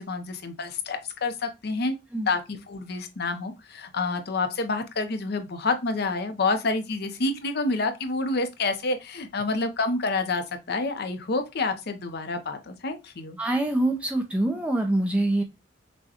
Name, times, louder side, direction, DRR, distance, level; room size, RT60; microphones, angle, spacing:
voice 1, 0.0-2.0 2.3-13.4, left 3 dB, 60° left, 0.6 m, -28 dB
voice 2, 13.4-15.4, right 1 dB, 5° right, 0.4 m, -24 dB
6.1 x 2.2 x 2.8 m
head